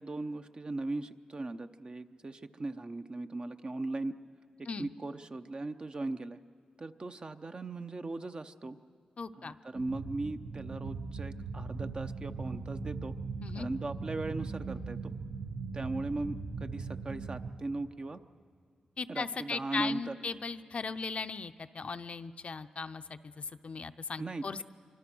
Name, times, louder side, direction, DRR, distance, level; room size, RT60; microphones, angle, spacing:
voice 1, 0.0-4.1 4.8-6.4 6.8-8.8 9.4-13.1 13.5-15.1 15.7-18.2 19.1-20.1 24.2-24.6, right 2 dB, 40° right, 8 dB, 0.8 m, -38 dB
voice 2, 9.2-9.6 13.4-13.7 19.0-24.6, left 4 dB, 55° left, 9 dB, 0.6 m, -38 dB
sound 1, 9.7-17.5, right 4 dB, 70° right, 1.5 m, -39 dB
24.5 x 24.5 x 6.2 m, 2.1 s
cardioid pair, 65°, 2 cm